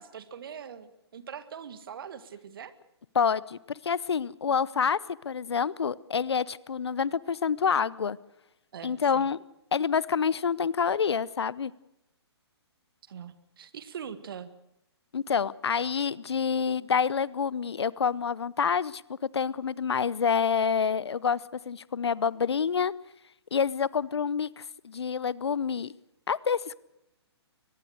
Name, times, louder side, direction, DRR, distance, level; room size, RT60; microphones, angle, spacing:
voice 1, 0.0-2.7 8.7-9.3 13.1-14.5, right 7 dB, 55° right, 13 dB, 1.9 m, -42 dB
voice 2, 3.1-3.6 3.8-5.0 5.2-8.2 8.8-9.4 9.7-11.7 15.1-22.9 23.5-25.9 26.3-26.8, left 6 dB, 70° left, 22 dB, 0.8 m, -27 dB
23.0 x 20.5 x 6.6 m, 0.84 s
figure-of-eight pair, 130°, 14 cm